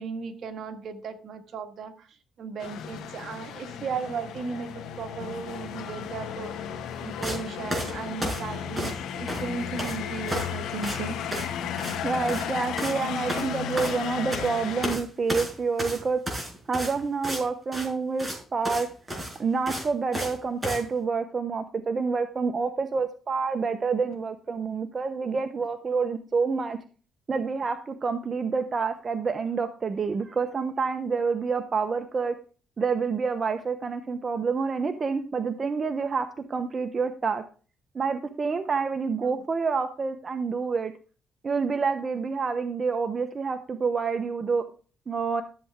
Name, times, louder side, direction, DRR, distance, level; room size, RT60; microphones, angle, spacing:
voice 1, 0.0-1.9 2.4-6.5 7.0-11.2 39.2-39.4, right 5 dB, 60° right, 6 dB, 1.8 m, -36 dB
sound 1, 2.6-15.0, left 8 dB, 85° left, 1.8 m, -34 dB
sound 2, 7.2-7.4 7.7-9.0 9.3-10.0 10.3-10.5 10.8-11.0 11.3-11.5 11.8-12.0 12.2-12.5 12.8-13.0 13.3-14.5 14.8-15.0 15.3-17.4 17.7-17.9 18.2-18.4 18.6-18.8 19.1-20.3 20.6-20.8, equal, 10° right, 5.6 m, -32 dB
voice 2, 12.0-16.2 16.7-18.9 19.4-26.8 27.3-32.3 32.8-37.4 37.9-40.9 41.4-44.6 45.1-45.4, right 5 dB, 40° right, 8 dB, 1.0 m, -28 dB
13.5 x 7.8 x 3.7 m, 0.38 s
cardioid pair, 90°, 0 cm